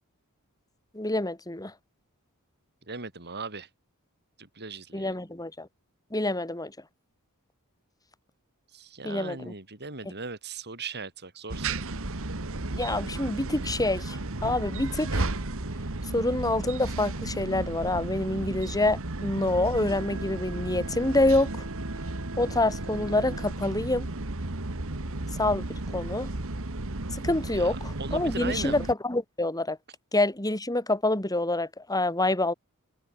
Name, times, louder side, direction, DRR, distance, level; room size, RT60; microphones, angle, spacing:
voice 1, 0.9-1.7 4.9-5.7 6.1-6.7 9.0-9.5 12.8-15.3 16.1-21.7 22.4-24.1 25.4-25.6 25.9-26.3 27.1-29.8 30.1-32.5, left 2 dB, 15° left, 5.1 m, -27 dB
voice 2, 2.9-3.7 4.4-5.1 8.7-11.9 27.4-28.8, right 4 dB, 50° right, 7.7 m, -38 dB
sound 1, 11.5-28.9, right 2 dB, 65° right, 1.9 m, -34 dB
head